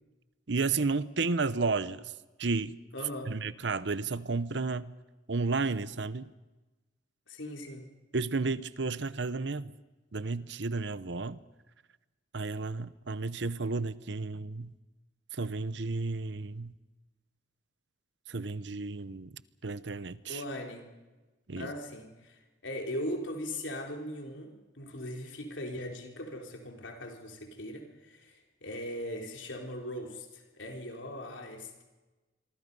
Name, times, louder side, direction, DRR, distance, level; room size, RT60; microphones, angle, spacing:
voice 1, 0.5-2.0 2.4-2.7 3.3-4.9 5.3-6.3 8.1-9.7 10.1-11.4 12.3-14.7 15.4-16.7 18.3-19.3 19.6-20.4 21.5-21.7, right 3 dB, 70° right, 16 dB, 0.9 m, -32 dB
voice 2, 2.9-3.3 7.3-7.9 20.2-20.9 21.6-31.8, left 1 dB, 85° left, 2 dB, 3.8 m, -39 dB
26.5 x 23.5 x 5.5 m, 1.2 s
head